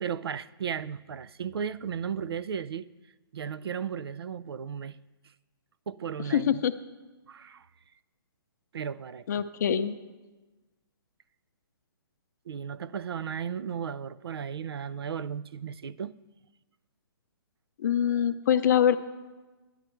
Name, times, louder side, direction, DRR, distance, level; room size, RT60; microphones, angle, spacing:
voice 1, 0.0-2.9 3.3-5.0 5.9-6.6 7.3-7.7 8.7-9.4 12.5-16.1, right 7 dB, 85° right, 0.4 m, -35 dB
voice 2, 6.3-6.7 9.3-9.9 17.8-19.0, left 9 dB, 45° left, 0.6 m, -24 dB
11.0 x 10.5 x 4.5 m
hypercardioid pair, 160°, 13 cm